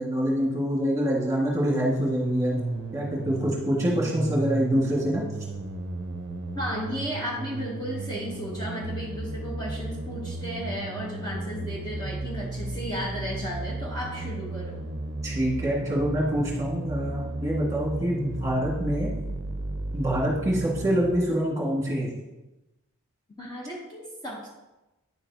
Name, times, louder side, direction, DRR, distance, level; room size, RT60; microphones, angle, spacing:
voice 1, 0.0-2.6 2.9-5.2 15.2-19.1 19.9-22.1, equal, 15° right, -4 dB, 1.9 m, -26 dB
sound 1, 1.7-21.1, right 2 dB, 50° right, 0.6 m, -33 dB
voice 2, 6.5-14.8 23.4-24.5, equal, 20° left, -4 dB, 1.0 m, -34 dB
9.8 x 7.0 x 2.9 m, 1.0 s
head